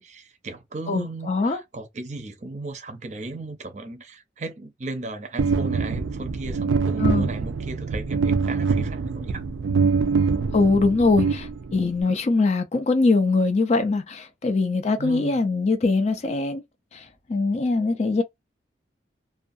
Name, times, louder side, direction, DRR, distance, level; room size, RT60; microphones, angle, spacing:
voice 1, 0.0-9.4 15.0-15.4, right 2 dB, 40° right, 0.5 m, -36 dB
voice 2, 0.9-1.6 7.0-7.3 10.5-16.6 16.9-18.2, left 3 dB, 35° left, 0.3 m, -22 dB
sound 1, 5.4-12.0, right 5 dB, 90° right, 0.4 m, -24 dB
2.4 x 2.2 x 2.6 m
head